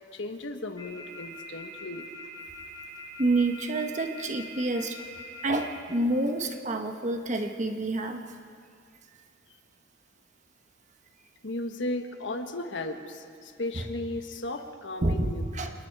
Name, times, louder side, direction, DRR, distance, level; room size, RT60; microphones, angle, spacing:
voice 1, 0.1-2.1 11.4-15.4, left 2 dB, 80° left, 6 dB, 1.3 m, -35 dB
sound 1, 0.8-5.7, left 3 dB, 25° left, 6.7 m, -43 dB
voice 2, 3.2-5.0 5.4-8.2 13.7-13.8 15.0-15.7, right 2 dB, 40° right, 5 dB, 1.2 m, -28 dB
27.0 x 20.0 x 4.8 m, 2.3 s
head